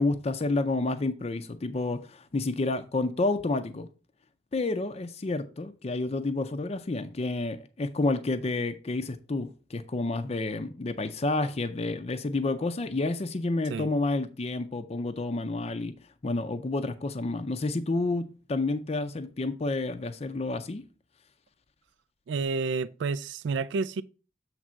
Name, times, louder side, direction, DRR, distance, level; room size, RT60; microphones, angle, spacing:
voice 1, 0.0-3.9 4.5-15.9 16.2-20.8, left 2 dB, 35° left, 0.5 m, -29 dB
voice 2, 22.3-24.0, right 4 dB, 80° right, 0.3 m, -30 dB
7.3 x 3.3 x 6.1 m
head